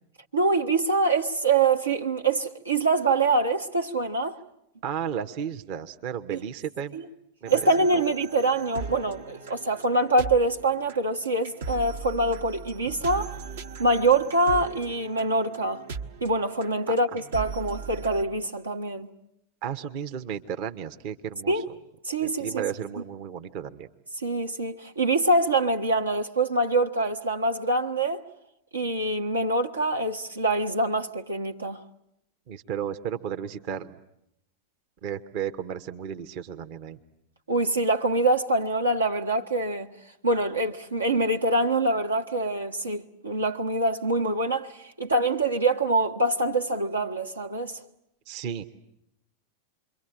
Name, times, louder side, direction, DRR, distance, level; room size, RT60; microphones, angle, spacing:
voice 1, 0.3-4.4 6.3-6.4 6.9-7.0 7.5-13.4 13.8-15.8 16.2-19.1 21.5-21.6 22.0-22.6 24.2-28.2 28.7-31.8 37.5-39.9 40.2-47.8, right 2 dB, 75° right, 1.4 m, -25 dB
voice 2, 4.8-7.0 7.4-8.0 16.9-17.2 19.6-21.6 22.2-23.9 32.5-34.0 35.0-37.0 48.3-48.6, right 8 dB, 45° right, 1.1 m, -34 dB
sound 1, 7.5-18.2, right 5 dB, 60° right, 1.1 m, -39 dB
28.0 x 23.5 x 8.9 m
figure-of-eight pair, 90°, 0 cm